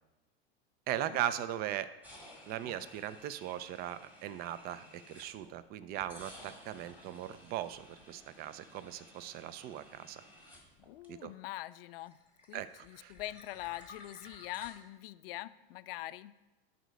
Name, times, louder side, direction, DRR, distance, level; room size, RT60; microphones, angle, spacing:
voice 1, 0.9-1.9 2.5-10.2 11.1-11.3 12.5-13.1, right 12 dB, 30° right, 14 dB, 0.4 m, -39 dB
sound 1, 2.0-5.6 5.9-11.5 11.8-14.7, left 1 dB, 5° right, 1.9 m, -55 dB
voice 2, 10.8-12.2 12.5-16.3, left 17 dB, 65° left, 15 dB, 0.5 m, -43 dB
11.0 x 4.1 x 5.2 m, 1.0 s
hypercardioid pair, 115°, 31 cm